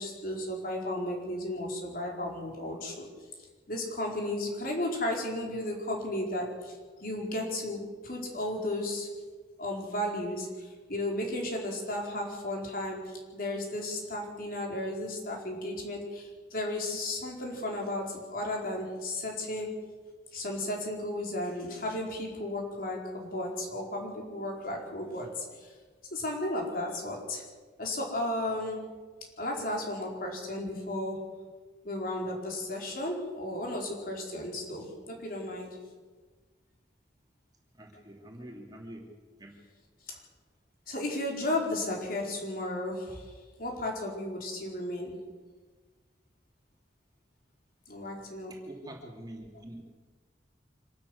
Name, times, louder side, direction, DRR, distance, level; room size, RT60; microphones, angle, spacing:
voice 1, 0.0-3.1 3.7-9.1 9.6-19.8 20.3-25.7 26.1-27.4 27.8-28.9 29.4-31.3 31.8-35.8 40.1-40.2 40.9-45.2 47.9-48.6, left 1 dB, 50° left, 0 dB, 4.7 m, -34 dB
voice 2, 37.7-39.1 39.4-39.5 48.5-49.8, right 1 dB, 20° right, 0 dB, 3.0 m, -45 dB
26.0 x 13.0 x 8.2 m, 1.4 s
head